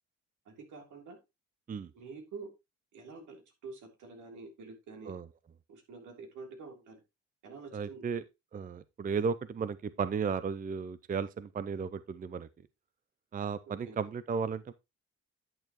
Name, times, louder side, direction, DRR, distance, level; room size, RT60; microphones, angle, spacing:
voice 1, 0.4-1.2 1.9-2.5 2.9-5.1 5.7-7.0 7.4-8.1 13.8-14.0, right 4 dB, 80° right, 3.2 m, -47 dB
voice 2, 7.7-8.2 8.5-12.5 13.3-14.7, right 6 dB, 30° right, 0.5 m, -34 dB
11.0 x 6.8 x 3.0 m
cardioid pair, 90°, 30 cm